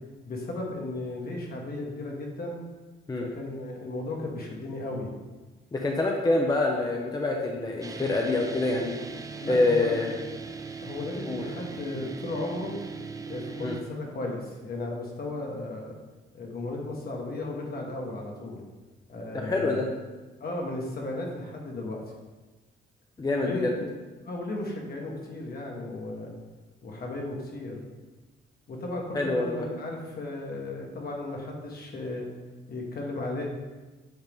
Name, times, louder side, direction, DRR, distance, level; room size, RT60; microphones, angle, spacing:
voice 1, 0.2-2.6 3.2-5.1 9.4-10.1 10.8-12.8 13.3-15.9 16.3-18.6 19.1-19.8 20.4-22.0 23.3-23.9 24.2-26.3 26.8-27.8 28.7-32.3 32.7-33.5, left 2 dB, 50° left, 0 dB, 1.5 m, -35 dB
voice 2, 5.7-9.0 9.5-10.1 11.3-11.5 13.6-13.8 19.3-19.9 23.2-23.7 29.1-29.7, left 2 dB, 20° left, 0 dB, 0.7 m, -26 dB
sound 1, 7.8-13.8, right 4 dB, 15° right, 0.4 m, -39 dB
8.0 x 3.8 x 3.6 m, 1.2 s
cardioid pair, 90°, 20 cm